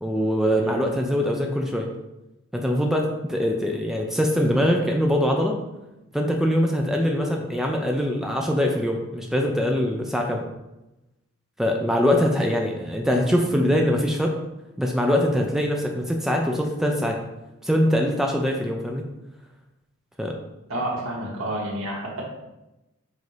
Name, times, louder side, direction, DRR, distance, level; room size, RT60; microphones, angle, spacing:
voice 1, 0.0-1.9 2.5-5.5 6.1-10.5 11.6-14.3 14.8-17.2 17.6-19.0 20.2-20.4, equal, ahead, 1 dB, 0.5 m, -23 dB
voice 2, 20.7-22.2, right 1 dB, 75° right, -3 dB, 2.0 m, -29 dB
8.0 x 2.8 x 4.9 m, 0.97 s
head